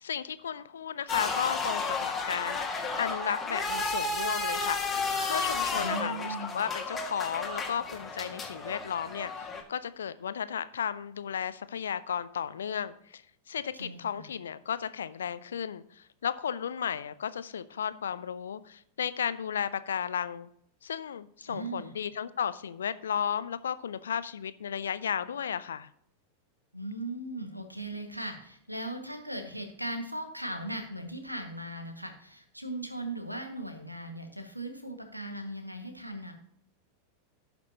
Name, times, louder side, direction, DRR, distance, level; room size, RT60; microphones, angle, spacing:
voice 1, 0.0-4.8 5.3-13.2 13.5-20.5 20.8-25.9, left 8 dB, 65° left, 15 dB, 0.6 m, -34 dB
sound 1, 1.1-9.6, left 3 dB, 15° left, 1.9 m, -32 dB
voice 2, 5.7-6.7 13.7-14.3 21.5-21.9 26.7-36.4, right 1 dB, 90° right, 5 dB, 1.7 m, -38 dB
16.5 x 6.1 x 2.8 m, 0.68 s
figure-of-eight pair, 90°, 0 cm